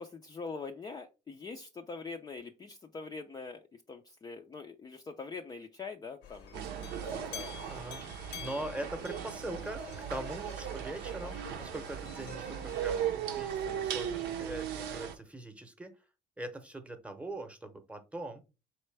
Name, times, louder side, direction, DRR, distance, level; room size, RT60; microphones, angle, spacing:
voice 1, 0.0-7.8 8.3-8.7 11.1-11.3, left 4 dB, 25° left, 4 dB, 0.4 m, -44 dB
sound 1, 6.2-13.0, left 8 dB, 90° left, 0.9 m, -49 dB
sound 2, 6.5-15.1, right 9 dB, 85° right, 0.7 m, -37 dB
voice 2, 7.6-9.8 10.1-15.9 16.4-18.4, right 1 dB, 5° right, 7 dB, 0.8 m, -42 dB
4.2 x 3.2 x 3.3 m, 0.29 s
cardioid pair, 110°, 17 cm